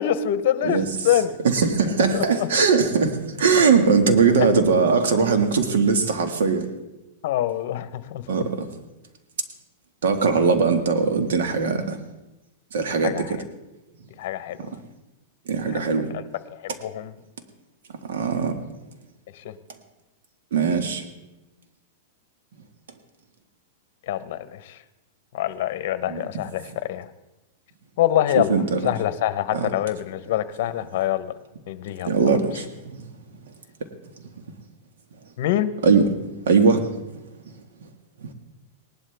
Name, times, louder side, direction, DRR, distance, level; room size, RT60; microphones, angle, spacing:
voice 1, 0.0-1.4 2.1-2.5 4.4-4.5 7.2-8.3 13.0-13.4 14.2-14.6 15.9-16.2 16.5-17.1 19.3-19.5 24.1-24.8 25.3-27.1 28.0-31.3 31.7-32.1 35.4-35.7, left 11 dB, 60° left, 14 dB, 0.9 m, -25 dB
voice 2, 1.4-6.7 8.3-8.7 10.0-12.0 12.7-13.4 14.6-14.7 15.4-16.1 18.0-18.5 20.5-21.0 26.1-26.2 28.3-28.9 29.5-29.7 32.0-33.0 35.8-36.1 36.4-37.2 38.2-38.3, right 5 dB, 80° right, 7 dB, 1.8 m, -20 dB
18.5 x 11.5 x 3.4 m, 1.0 s
supercardioid pair, 145°, 0 cm